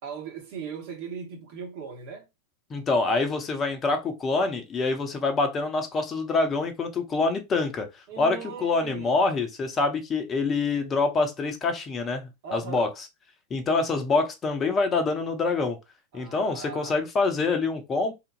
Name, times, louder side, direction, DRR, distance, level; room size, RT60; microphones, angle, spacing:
voice 1, 0.0-2.3 8.1-9.3 12.4-12.9 16.1-17.0, right 6 dB, 50° right, 1.3 m, -38 dB
voice 2, 2.7-7.9 8.2-12.9 13.5-15.8 16.1-18.1, left 3 dB, 25° left, 0.7 m, -26 dB
2.8 x 2.5 x 2.5 m
figure-of-eight pair, 90°, 0 cm